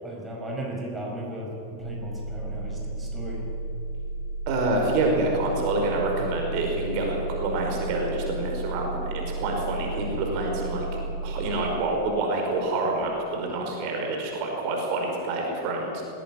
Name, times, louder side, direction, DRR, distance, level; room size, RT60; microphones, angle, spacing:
voice 1, 0.0-3.5, right 1 dB, 15° right, -1 dB, 5.5 m, -36 dB
sound 1, 1.8-11.8, right 2 dB, 80° right, 2.6 m, -33 dB
voice 2, 4.5-10.9 11.2-16.0, right 2 dB, 45° right, 1 dB, 5.1 m, -27 dB
20.0 x 16.5 x 9.9 m, 2.7 s
figure-of-eight pair, 90°, 0 cm